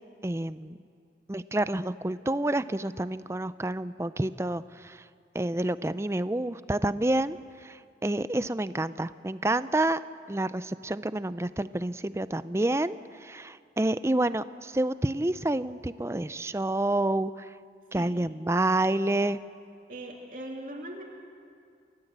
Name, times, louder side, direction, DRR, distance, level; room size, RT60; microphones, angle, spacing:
voice 1, 0.2-0.8 1.3-5.0 5.3-10.0 10.3-17.5 17.9-19.4, right 1 dB, 15° right, 14 dB, 0.5 m, -28 dB
voice 2, 19.9-21.0, right 1 dB, 50° right, -1 dB, 2.8 m, -40 dB
29.0 x 16.0 x 8.1 m, 2.3 s
head